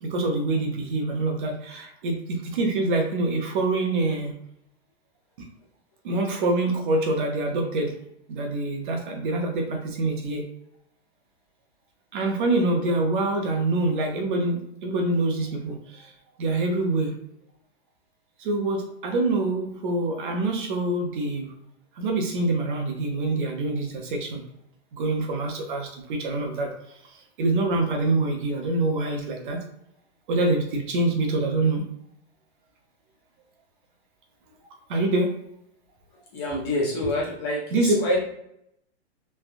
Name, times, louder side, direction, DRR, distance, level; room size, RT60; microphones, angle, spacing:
voice 1, 0.0-4.3 6.0-7.9 8.3-10.4 12.1-16.1 16.4-17.1 18.4-21.5 22.0-24.4 24.9-26.7 27.4-29.6 30.3-31.8 34.9-35.3 37.7-37.9, right 2 dB, 50° right, 2 dB, 0.7 m, -25 dB
voice 2, 36.3-38.2, left 1 dB, 25° left, -3 dB, 0.5 m, -26 dB
3.2 x 2.2 x 2.5 m, 0.76 s
supercardioid pair, 165°, 33 cm